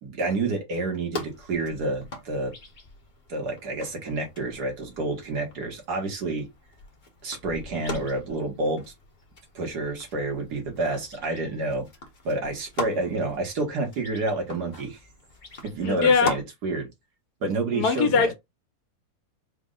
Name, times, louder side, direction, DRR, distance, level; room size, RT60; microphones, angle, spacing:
voice 1, 0.0-2.5 3.3-6.5 7.2-8.8 9.6-11.9 12.3-15.0 15.6-16.9 17.4-18.3, right 2 dB, 90° right, 1.9 m, -29 dB
sound 1, 1.1-16.4, left 2 dB, 35° left, 0.9 m, -41 dB
voice 2, 15.8-16.3 17.7-18.3, left 5 dB, 85° left, 1.4 m, -21 dB
4.3 x 2.1 x 3.7 m
omnidirectional pair, 1.7 m